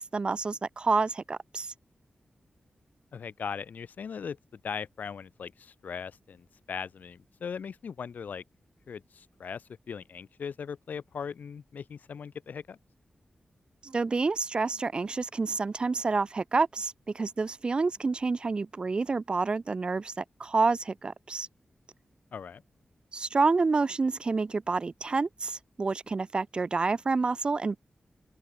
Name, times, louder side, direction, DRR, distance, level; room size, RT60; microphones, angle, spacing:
voice 1, 0.0-1.7 13.8-21.5 23.1-27.8, right 4 dB, 35° right, 1.0 m, -28 dB
voice 2, 3.1-8.4 8.9-12.8 22.3-22.6, left 6 dB, 75° left, 3.5 m, -39 dB
wide cardioid pair, 175°, 3 cm